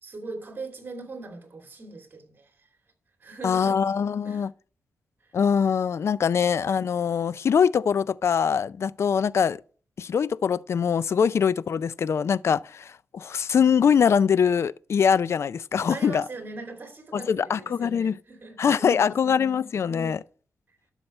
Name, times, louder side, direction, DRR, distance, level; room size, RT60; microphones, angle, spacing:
voice 1, 0.0-2.7 3.2-3.9 4.2-4.5 5.2-5.3 15.9-19.3 19.9-20.2, right 3 dB, 40° right, 2.7 m, -41 dB
voice 2, 3.4-4.5 5.3-9.6 10.0-16.2 17.1-18.1 18.6-20.2, left 7 dB, 60° left, 0.4 m, -23 dB
12.0 x 5.7 x 4.3 m
cardioid pair, 80°, 5 cm